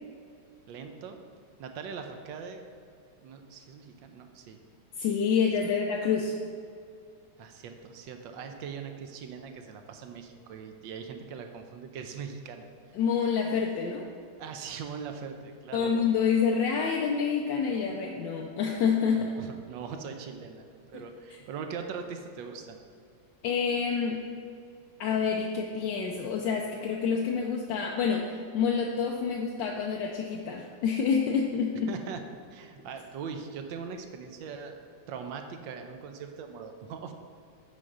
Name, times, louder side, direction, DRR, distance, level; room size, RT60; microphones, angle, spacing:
voice 1, 0.7-1.2 1.6-2.6 3.2-4.6 7.4-12.7 14.4-15.9 19.1-22.8 31.9-32.2 32.5-34.8 35.1-37.1, right 6 dB, 80° right, 6 dB, 1.4 m, -41 dB
voice 2, 5.0-6.3 12.9-14.1 15.7-19.3 23.4-24.2 25.0-31.9, left 6 dB, 80° left, 0 dB, 1.3 m, -27 dB
7.6 x 4.9 x 5.2 m, 2.3 s
omnidirectional pair, 2.1 m